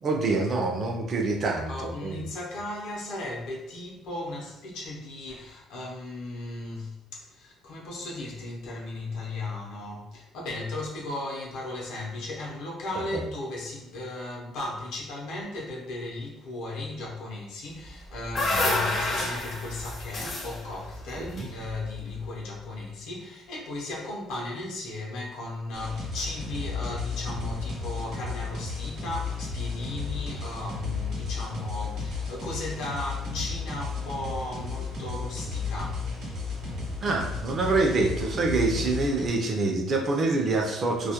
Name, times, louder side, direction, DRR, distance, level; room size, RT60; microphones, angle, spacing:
voice 1, 0.0-2.3 18.5-18.7 21.2-21.5 37.0-41.1, right 3 dB, 35° right, 1 dB, 0.4 m, -26 dB
voice 2, 1.7-36.1, left 2 dB, 75° left, -2 dB, 0.6 m, -36 dB
sound 1, 17.9-22.1, left 2 dB, 35° left, 0.5 m, -30 dB
sound 2, 25.7-39.3, left 4 dB, 60° right, 0.8 m, -33 dB
2.3 x 2.1 x 2.8 m, 0.87 s
cardioid pair, 155°, 0 cm